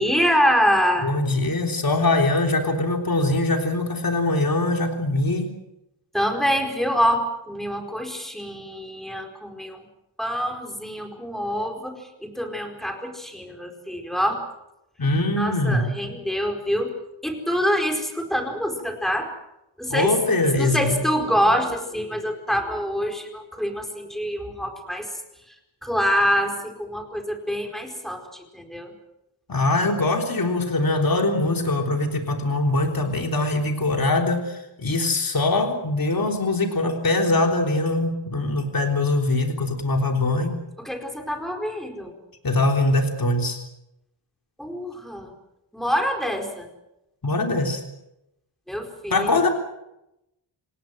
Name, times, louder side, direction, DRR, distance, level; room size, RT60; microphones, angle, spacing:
voice 1, 0.0-1.1 6.1-9.8 10.2-14.4 15.4-16.9 17.2-19.3 19.8-20.1 20.6-25.1 25.8-28.9 40.8-42.1 44.6-45.3 45.7-46.7 48.7-49.4, equal, ahead, 4 dB, 4.6 m, -25 dB
voice 2, 1.0-5.5 15.0-15.9 19.9-21.0 29.5-40.6 42.4-43.6 47.2-47.8 49.1-49.5, left 2 dB, 45° left, 3 dB, 3.6 m, -22 dB
28.0 x 17.5 x 7.7 m, 0.87 s
wide cardioid pair, 115°, 47 cm